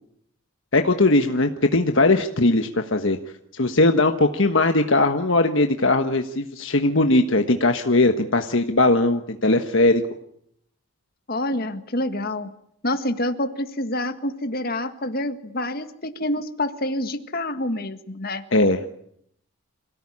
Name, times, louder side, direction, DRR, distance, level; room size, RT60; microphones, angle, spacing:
voice 1, 0.7-3.2 3.5-10.0 18.5-18.9, left 2 dB, 60° left, 6 dB, 1.4 m, -19 dB
voice 2, 11.3-12.5 12.8-18.4, left 1 dB, 45° left, 8 dB, 1.8 m, -27 dB
27.0 x 17.5 x 9.9 m, 0.72 s
head